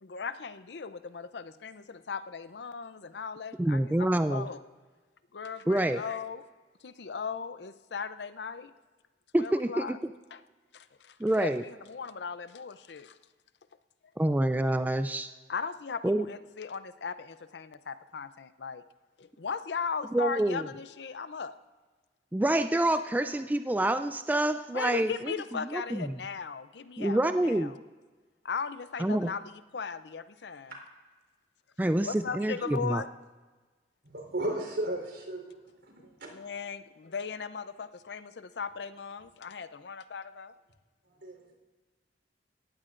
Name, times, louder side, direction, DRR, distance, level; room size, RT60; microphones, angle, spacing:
voice 1, 0.0-4.6 5.3-6.4 6.8-8.7 9.4-10.0 10.3-10.4 10.7-13.1 15.5-18.8 19.2-21.5 24.7-27.7 28.4-30.7 32.0-33.1 36.3-40.5, left 5 dB, 65° left, 12 dB, 0.6 m, -38 dB
voice 2, 3.6-4.5 5.7-6.0 9.3-10.1 11.2-11.6 14.2-15.3 16.0-16.3 20.1-20.7 22.3-26.2 27.0-27.7 29.0-29.3 31.8-33.0, right 1 dB, 10° right, 9 dB, 0.3 m, -27 dB
voice 3, 34.1-35.5 36.0-36.5 41.2-41.5, right 1 dB, 80° right, 1 dB, 3.9 m, -35 dB
18.5 x 15.0 x 2.5 m, 1.3 s
head